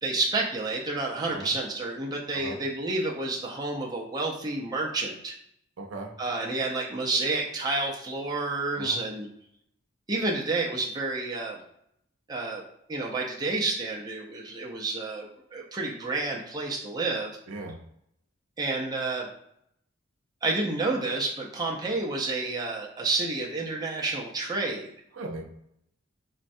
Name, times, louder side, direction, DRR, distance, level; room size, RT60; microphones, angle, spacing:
voice 1, 0.0-5.4 6.2-9.3 10.1-11.6 12.3-12.6 12.9-17.4 18.6-19.3 20.4-24.9, right 3 dB, 20° right, -3 dB, 0.5 m, -30 dB
voice 2, 5.8-6.1 8.8-9.0 17.5-17.8 25.1-25.4, right 2 dB, 80° right, 2 dB, 0.5 m, -38 dB
4.0 x 2.2 x 2.6 m, 0.75 s
head